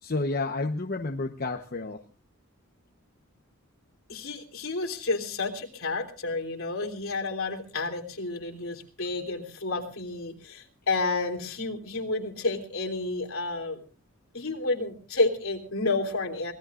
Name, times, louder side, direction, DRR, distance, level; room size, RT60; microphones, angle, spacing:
voice 1, 0.0-2.0, left 3 dB, 45° left, 4 dB, 1.0 m, -30 dB
voice 2, 4.1-13.8 14.3-16.5, left 3 dB, 70° left, 2 dB, 3.3 m, -30 dB
24.5 x 19.0 x 2.5 m, 0.35 s
head